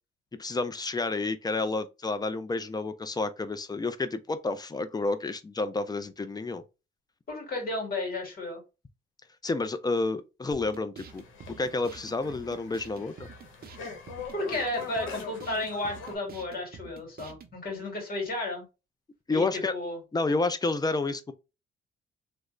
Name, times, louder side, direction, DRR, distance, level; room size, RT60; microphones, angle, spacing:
voice 1, 0.3-6.6 9.4-13.3 19.3-19.7 20.1-21.3, left 3 dB, 20° left, 0.5 m, -30 dB
voice 2, 7.3-8.6 14.3-18.7 19.3-20.0, left 2 dB, 50° left, 2.1 m, -33 dB
sound 1, 10.5-17.5, right 5 dB, 50° right, 0.7 m, -48 dB
sound 2, 11.1-16.2, left 6 dB, 80° left, 1.0 m, -43 dB
3.2 x 2.5 x 3.1 m
cardioid pair, 90°, 20 cm